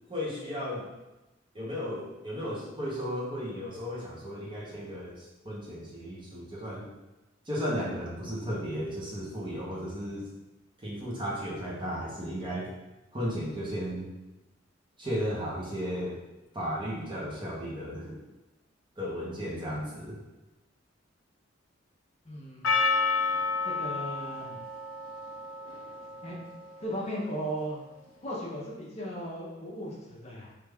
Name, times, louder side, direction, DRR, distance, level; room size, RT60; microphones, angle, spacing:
voice 1, 0.1-0.9 1.5-6.9 7.5-10.2 10.8-12.7 13.1-14.1 15.0-16.2 16.5-18.2 19.0-20.2, equal, 25° right, -5 dB, 0.6 m, -34 dB
voice 2, 22.2-22.7 23.6-24.6 26.2-26.4 26.8-27.8 28.2-30.5, equal, 30° left, -4 dB, 0.6 m, -36 dB
Percussion, 22.6-27.2, left 4 dB, 85° left, 0.5 m, -31 dB
3.2 x 2.3 x 3.4 m, 1.0 s
head